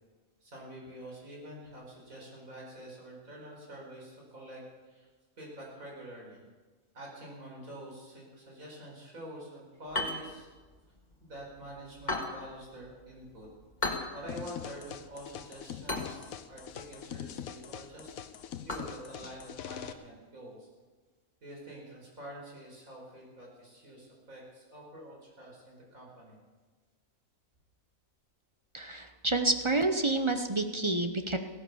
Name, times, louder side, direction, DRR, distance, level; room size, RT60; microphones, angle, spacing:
voice 1, 0.4-5.1 5.4-6.5 6.9-10.5 11.2-13.5 14.1-18.2 18.7-20.7 21.4-26.4, right 1 dB, 70° right, -2 dB, 4.9 m, -47 dB
sound 1, 9.9-20.0, left 2 dB, 30° left, 2.0 m, -41 dB
sound 2, 14.3-19.9, left 9 dB, 80° left, 1.2 m, -43 dB
voice 2, 28.7-31.4, right 2 dB, 25° right, 6 dB, 0.7 m, -29 dB
16.5 x 11.0 x 7.0 m, 1.4 s
omnidirectional pair, 1.5 m